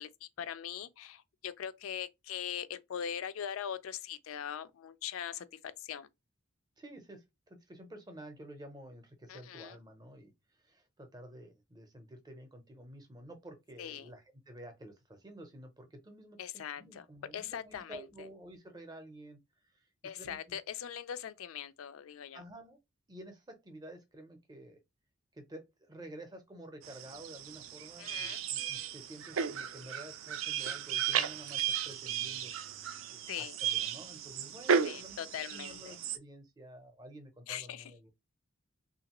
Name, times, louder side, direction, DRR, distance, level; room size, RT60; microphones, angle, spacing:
voice 1, 0.0-5.4 5.8-6.1 9.3-9.8 13.8-14.1 16.4-17.1 17.3-18.0 20.0-22.4 28.0-28.4 33.3-33.6 34.8-36.0 37.5-37.9, left 9 dB, 90° left, 0.4 m, -41 dB
voice 2, 6.8-16.4 16.8-19.4 19.7-19.8 20.1-20.6 22.3-22.8 23.1-24.8 25.3-32.5 33.1-38.1, right 1 dB, 20° right, 0.6 m, -51 dB
sound 1, 26.8-36.2, right 7 dB, 80° right, 0.4 m, -35 dB
3.1 x 2.5 x 2.9 m
head